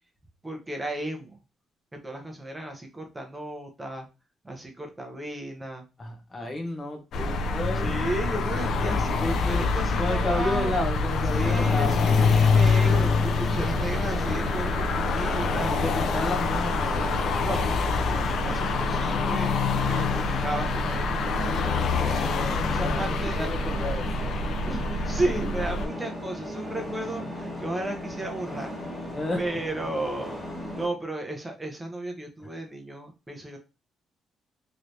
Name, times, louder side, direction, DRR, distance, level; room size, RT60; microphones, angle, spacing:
voice 1, 0.4-1.4 2.0-4.1 4.4-5.8 7.8-10.7 11.3-15.7 17.4-19.5 19.9-21.5 22.0-23.5 24.7-29.1 29.4-30.4 30.7-33.6, right 2 dB, 15° right, 0.9 m, -34 dB
voice 2, 6.0-8.0 9.2-9.7 10.0-12.0 15.7-17.2 22.0-22.5 22.8-24.4 29.1-29.4, left 2 dB, 30° left, 0.9 m, -32 dB
sound 1, 7.1-25.9, left 4 dB, 70° left, 0.4 m, -25 dB
sound 2, 11.4-30.9, equal, ahead, 1.4 m, -36 dB
3.2 x 3.1 x 2.7 m
cardioid pair, 90°, 0 cm